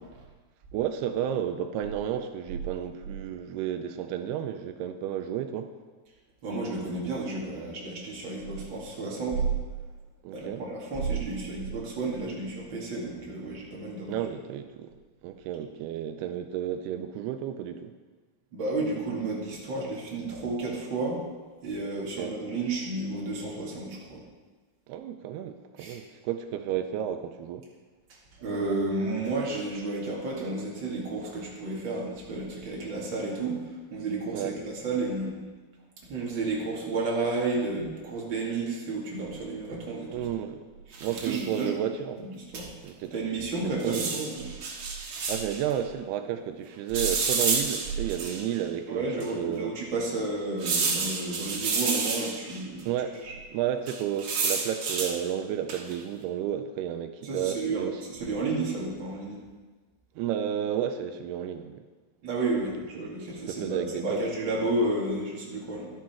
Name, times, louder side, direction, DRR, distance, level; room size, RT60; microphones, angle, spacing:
voice 1, 0.7-5.7 10.2-10.6 14.1-14.9 15.2-17.9 22.2-22.4 24.9-27.7 34.3-34.6 40.1-40.7 41.0-42.3 42.8-43.1 43.6-44.1 45.3-49.7 52.9-53.2 53.5-58.0 60.2-61.8 63.5-64.2, right 10 dB, 90° right, 8 dB, 2.6 m, -32 dB
voice 2, 6.4-9.4 10.3-14.2 18.5-21.2 21.6-24.2 25.8-26.0 28.4-35.4 36.0-40.2 40.9-41.7 42.2-42.7 43.1-44.5 48.9-52.9 53.2-53.3 57.2-59.4 62.2-65.9, right 3 dB, 35° right, -4 dB, 2.6 m, -32 dB
sound 1, 40.9-41.5 42.5-42.6 42.9-43.0 43.8-45.6 46.9-48.6 49.2-49.3 50.6-52.6 53.9-55.2 55.7-56.0, right 4 dB, 55° right, 1.6 m, -29 dB
11.5 x 11.5 x 4.5 m, 1.3 s
omnidirectional pair, 4.6 m